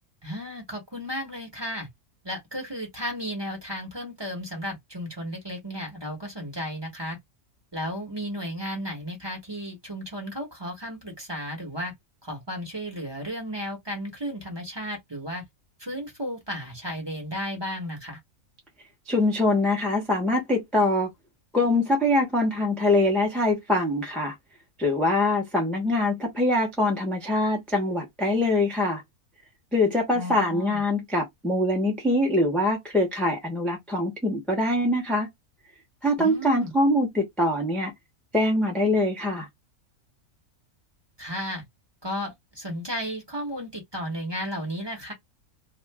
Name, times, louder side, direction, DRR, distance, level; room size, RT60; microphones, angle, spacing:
voice 1, 0.2-1.9 2.2-7.2 7.7-11.9 12.2-15.4 15.8-18.2 30.1-30.8 36.2-36.7 41.2-41.6 42.0-45.1, equal, 20° right, 0.9 m, -34 dB
voice 2, 19.1-21.1 21.5-24.3 24.8-29.0 29.7-35.3 36.0-37.9 38.3-39.5, left 1 dB, ahead, 0.6 m, -23 dB
2.5 x 2.4 x 3.3 m
omnidirectional pair, 1.5 m